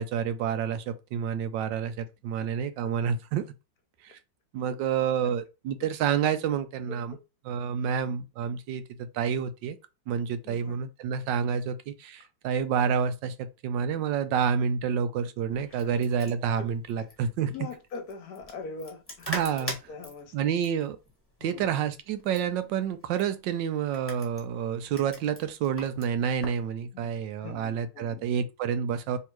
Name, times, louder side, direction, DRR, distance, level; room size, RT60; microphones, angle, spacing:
voice 1, 0.0-3.4 4.0-4.2 4.5-7.2 7.4-9.8 10.1-17.5 19.3-19.8 20.3-21.0 21.4-29.2, right 7 dB, 80° right, 1.2 m, -29 dB
voice 2, 6.9-7.2 7.8-8.0 10.4-10.8 15.8-16.0 16.6-16.7 17.0-17.1 17.5-19.3 19.6-20.6 21.4-21.8 26.9-27.1 27.4-28.2, left 4 dB, 60° left, 1.2 m, -43 dB
sound 1, 15.5-26.6, equal, 10° left, 1.3 m, -43 dB
3.5 x 2.8 x 4.5 m
omnidirectional pair, 2.0 m